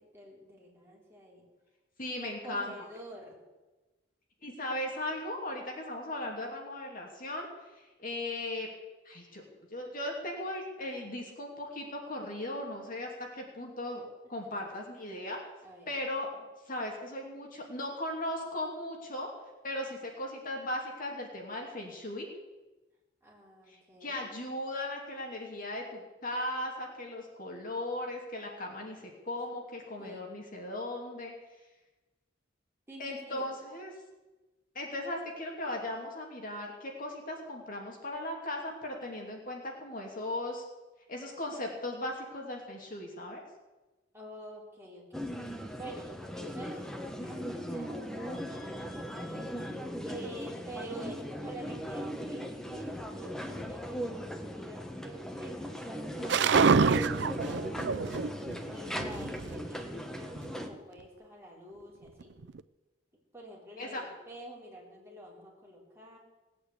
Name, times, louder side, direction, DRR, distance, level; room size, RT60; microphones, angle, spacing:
voice 1, 0.0-1.4 2.2-3.4 15.6-15.9 23.2-24.2 30.0-30.2 32.9-33.5 44.1-46.9 47.2-49.3 50.0-58.1 58.7-62.4 63.3-66.2, right 1 dB, 15° right, -3 dB, 4.2 m, -48 dB
voice 2, 2.0-2.7 4.4-7.5 8.0-8.7 9.0-15.4 15.9-16.3 16.7-19.3 19.6-22.3 23.7-31.3 33.0-33.9 34.7-40.6 41.1-43.4 63.8-64.0, left 1 dB, 45° left, 1 dB, 2.7 m, -37 dB
sound 1, 45.1-60.7, equal, 5° left, 1.4 m, -38 dB
sound 2, 56.3-58.5 58.9-59.7 60.4-60.5 62.2-62.6, right 5 dB, 65° right, 0.5 m, -27 dB
18.5 x 8.6 x 8.4 m, 1.1 s
head